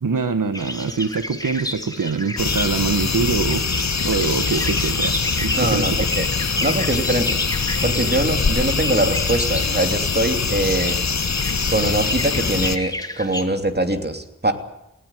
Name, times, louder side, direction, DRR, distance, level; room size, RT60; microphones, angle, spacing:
voice 1, 0.0-3.7 4.1-6.0, right 4 dB, 90° right, 10 dB, 1.3 m, -24 dB
sound 1, 0.5-13.4, left 1 dB, 10° left, 2.5 m, -31 dB
sound 2, 2.4-12.8, left 4 dB, 60° left, 1.1 m, -23 dB
voice 2, 5.5-6.3 6.6-7.4 7.8-11.0 11.7-14.5, right 1 dB, 30° right, 6 dB, 3.0 m, -22 dB
20.0 x 17.5 x 9.2 m, 0.84 s
wide cardioid pair, 70°, 31 cm